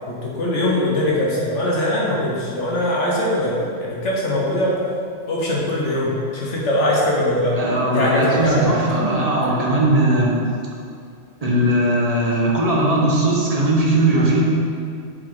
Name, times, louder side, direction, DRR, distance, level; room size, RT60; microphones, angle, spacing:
voice 1, 0.1-4.8 5.3-7.6 7.9-8.8, left 1 dB, 75° left, -4 dB, 1.3 m, -21 dB
voice 2, 7.6-10.4 11.4-14.4, right 1 dB, 35° right, -3 dB, 1.1 m, -18 dB
6.6 x 5.4 x 3.8 m, 2.3 s
omnidirectional pair, 1.3 m